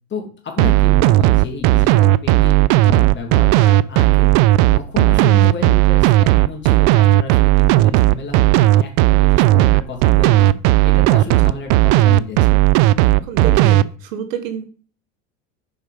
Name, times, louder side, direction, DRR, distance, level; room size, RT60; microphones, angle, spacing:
voice 1, 0.1-4.3 4.7-10.5 10.8-12.7, left 4 dB, 30° left, 1 dB, 2.6 m, -31 dB
sound 1, 0.6-13.8, right 16 dB, 60° right, 0.5 m, -13 dB
voice 2, 13.3-14.7, right 6 dB, 90° right, 9 dB, 1.1 m, -27 dB
6.9 x 5.2 x 5.0 m, 0.41 s
supercardioid pair, 115°, 39 cm